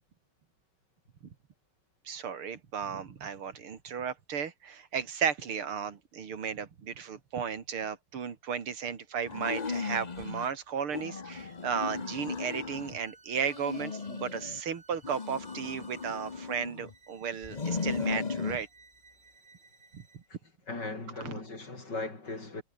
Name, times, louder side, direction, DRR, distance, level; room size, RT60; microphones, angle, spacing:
voice 1, 2.0-18.7 19.9-20.2 21.2-21.3, right 7 dB, 90° right, 3.1 m, -35 dB
sound 1, 9.3-10.5 10.9-13.0 13.4-14.6 15.0-16.9 17.4-18.6, left 4 dB, 30° left, 0.8 m, -36 dB
sound 2, 11.8-12.2 12.7-20.3, right 4 dB, 75° right, 5.5 m, -59 dB
voice 2, 20.7-22.6, left 3 dB, 55° left, 5.8 m, -38 dB
omnidirectional pair, 2.3 m